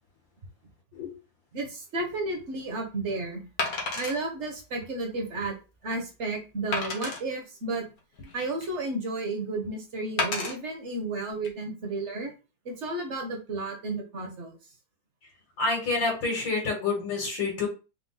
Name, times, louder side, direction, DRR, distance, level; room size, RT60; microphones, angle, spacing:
voice 1, 1.5-3.5 4.0-5.6 5.8-7.9 8.3-12.3 12.6-14.6, right 2 dB, 45° right, 2 dB, 1.0 m, -32 dB
Wood, 2.0-2.1 3.6-4.2 4.8-4.9 5.4-5.5 6.7-7.2 8.0-8.8 10.2-10.5 11.3-11.5, left 3 dB, 55° left, 1.3 m, -31 dB
voice 2, 15.6-17.7, left 3 dB, 70° left, -2 dB, 2.2 m, -28 dB
4.7 x 2.2 x 3.9 m, 0.31 s
omnidirectional pair, 2.1 m